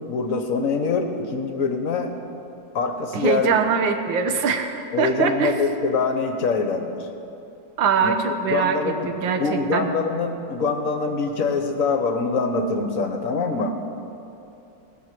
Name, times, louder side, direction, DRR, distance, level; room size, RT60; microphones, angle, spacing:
voice 1, 0.1-2.1 2.7-3.6 4.9-7.0 8.0-8.1 8.5-9.1 9.4-13.7, left 4 dB, 50° left, 5 dB, 1.3 m, -24 dB
voice 2, 3.1-5.6 7.8-8.8 9.0-9.9, right 6 dB, 85° right, 7 dB, 1.7 m, -22 dB
19.0 x 6.6 x 7.5 m, 2.8 s
omnidirectional pair, 2.0 m